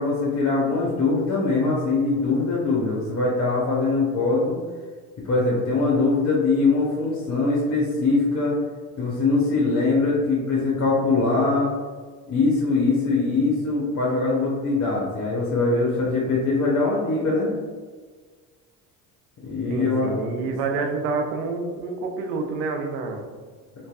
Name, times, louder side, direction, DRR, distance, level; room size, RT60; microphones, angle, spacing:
voice 1, 0.0-4.6 5.2-8.6 9.0-11.7 12.3-17.5 19.4-20.1, left 3 dB, 35° left, -5 dB, 0.7 m, -22 dB
voice 2, 19.7-23.2, right 4 dB, 80° right, 3 dB, 0.6 m, -28 dB
2.6 x 2.2 x 2.3 m, 1.5 s
hypercardioid pair, 60°, 46 cm